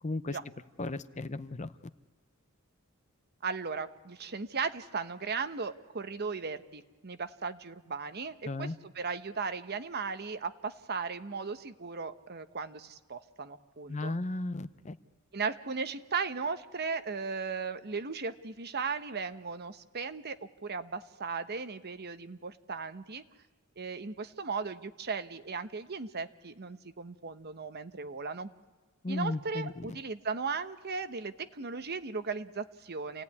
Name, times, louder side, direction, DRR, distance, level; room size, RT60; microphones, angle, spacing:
voice 1, 0.0-0.4 0.8-1.7 8.5-8.8 13.9-15.0 29.0-29.9, left 2 dB, 30° left, 13 dB, 0.7 m, -35 dB
voice 2, 3.4-8.7 9.0-14.1 15.3-23.2 23.8-28.5 29.1-33.2, right 5 dB, 50° right, 10 dB, 1.0 m, -37 dB
28.5 x 17.5 x 9.6 m, 1.3 s
head